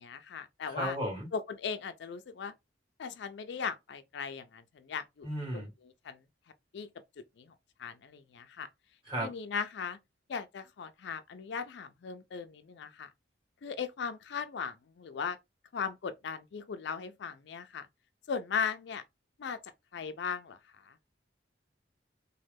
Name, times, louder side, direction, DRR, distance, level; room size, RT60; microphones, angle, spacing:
voice 1, 0.0-1.0 1.3-2.5 3.0-5.3 5.5-6.2 6.7-6.9 7.4-7.5 7.8-8.7 9.2-10.0 10.3-13.1 13.6-15.4 15.7-17.9 18.3-19.0 19.4-19.6 19.9-20.9, left 6 dB, 65° left, 0.4 m, -38 dB
voice 2, 0.7-1.3 5.2-5.7 9.1-9.3, equal, 25° right, 1.8 m, -34 dB
3.1 x 2.2 x 3.3 m
head